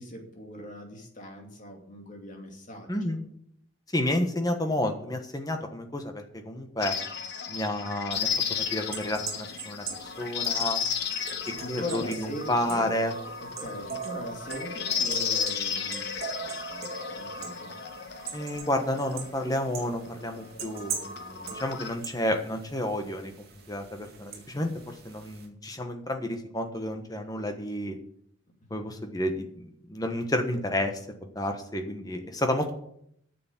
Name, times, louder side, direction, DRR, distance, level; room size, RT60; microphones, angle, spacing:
voice 1, 0.0-3.2 11.6-12.9 13.4-17.7 28.7-28.8, equal, 40° left, 2 dB, 2.4 m, -40 dB
voice 2, 2.9-3.2 3.9-7.0 7.5-10.8 11.7-13.1 18.3-23.3 23.7-28.0 28.7-32.7, left 1 dB, 20° left, 5 dB, 1.3 m, -31 dB
sound 1, 6.8-21.9, left 7 dB, 55° left, 1.1 m, -34 dB
sound 2, 8.1-25.5, right 5 dB, 45° right, 2.2 m, -42 dB
9.4 x 6.9 x 8.5 m, 0.70 s
head